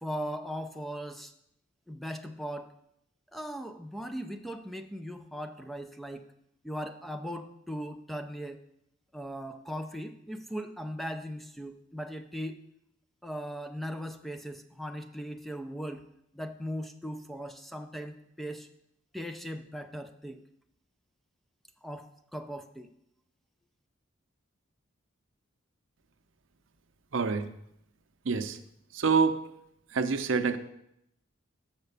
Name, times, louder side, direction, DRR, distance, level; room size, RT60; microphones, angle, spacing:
voice 1, 0.0-1.3 1.9-2.7 3.3-6.3 6.6-8.6 9.1-12.6 13.2-16.1 16.3-18.7 19.1-20.4 21.8-22.9, equal, ahead, 7 dB, 0.4 m, -38 dB
voice 2, 27.1-27.5 28.2-28.6 28.9-29.4 29.9-30.6, right 5 dB, 65° right, 10 dB, 0.6 m, -26 dB
6.6 x 5.8 x 6.6 m, 0.77 s
head